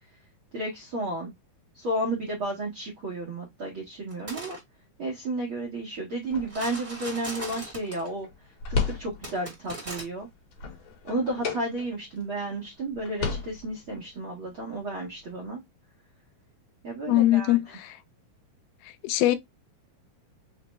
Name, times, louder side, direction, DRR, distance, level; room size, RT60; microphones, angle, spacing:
voice 1, 0.5-1.3 1.7-4.6 5.0-8.3 8.7-10.3 11.0-15.6 16.8-17.8, right 2 dB, 75° right, 1.1 m, -32 dB
sound 1, 4.1-4.6 6.5-8.1 9.2-10.0, right 2 dB, 30° right, 0.8 m, -38 dB
sound 2, 6.2-9.5 10.0-12.2 12.6-12.7 12.9-14.1, left 5 dB, 65° left, 2.3 m, -34 dB
voice 2, 17.1-18.0 19.0-19.4, left 15 dB, 85° left, 2.4 m, -22 dB
5.7 x 2.2 x 3.0 m
omnidirectional pair, 4.4 m